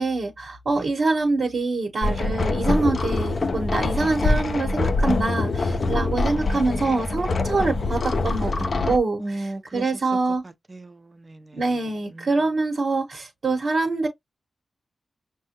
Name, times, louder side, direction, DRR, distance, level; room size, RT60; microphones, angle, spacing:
voice 1, 0.0-8.5 8.9-10.4 11.5-14.1, right 3 dB, 65° right, 1.1 m, -25 dB
sound 1, 2.0-9.0, left 3 dB, 50° left, 0.4 m, -24 dB
voice 2, 9.2-9.9 10.4-11.6 12.1-12.3, right 2 dB, 30° right, 0.6 m, -36 dB
6.0 x 2.2 x 2.8 m
wide cardioid pair, 105°, 0 cm